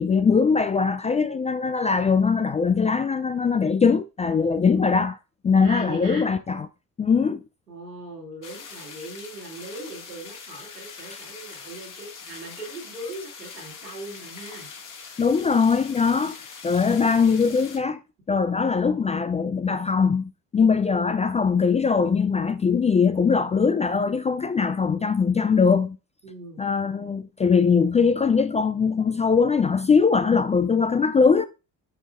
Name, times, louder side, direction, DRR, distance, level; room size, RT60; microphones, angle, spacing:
voice 1, 0.0-5.2 5.4-6.7 7.0-7.4 15.2-16.4 16.6-18.0 18.3-26.0 26.6-31.5, left 5 dB, 15° left, 0.3 m, -21 dB
voice 2, 5.6-6.2 7.7-14.7 26.2-26.6, right 2 dB, 85° right, 2.6 m, -39 dB
sound 1, 8.4-17.8, left 5 dB, 40° left, 2.3 m, -42 dB
9.3 x 6.2 x 2.5 m
figure-of-eight pair, 45°, 47 cm